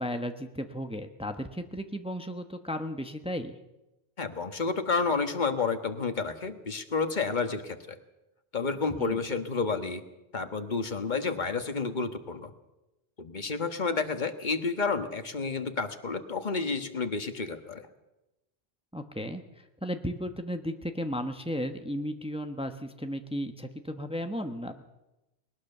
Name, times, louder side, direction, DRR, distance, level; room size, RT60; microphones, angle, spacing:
voice 1, 0.0-3.6 9.0-9.2 18.9-24.8, equal, 5° right, 7 dB, 1.0 m, -35 dB
voice 2, 4.2-8.0 8.5-10.0 10.3-12.5 13.2-17.8, left 4 dB, 45° left, 8 dB, 1.6 m, -30 dB
20.5 x 19.5 x 6.7 m, 0.97 s
omnidirectional pair, 1.1 m